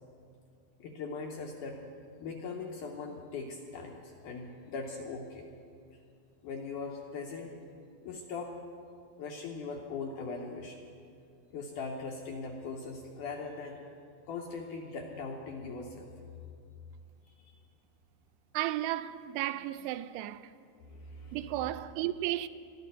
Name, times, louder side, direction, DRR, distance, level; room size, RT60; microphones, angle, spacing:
voice 1, 0.8-1.8 2.2-5.5 5.9-6.0 6.4-7.5 8.0-8.6 9.2-10.8 11.5-13.8 14.3-16.1 17.3-17.5 20.8-21.7, left 4 dB, 80° left, 1.8 m, -40 dB
voice 2, 18.5-20.5 21.3-22.5, right 14 dB, 85° right, 2.6 m, -34 dB
23.0 x 13.5 x 4.2 m
omnidirectional pair, 4.8 m